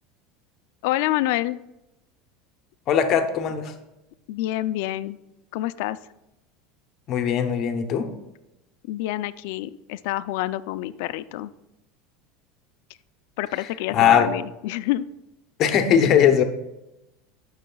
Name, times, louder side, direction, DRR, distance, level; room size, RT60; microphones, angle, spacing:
voice 1, 0.8-1.6 4.3-5.2 5.5-6.0 8.9-11.5 13.4-15.0, left 15 dB, 60° left, 14 dB, 0.3 m, -27 dB
voice 2, 2.9-3.7 7.1-8.1 13.9-14.3 15.6-16.4, left 8 dB, 35° left, 7 dB, 0.7 m, -19 dB
15.0 x 6.3 x 2.3 m, 0.94 s
cardioid pair, 175°, 0 cm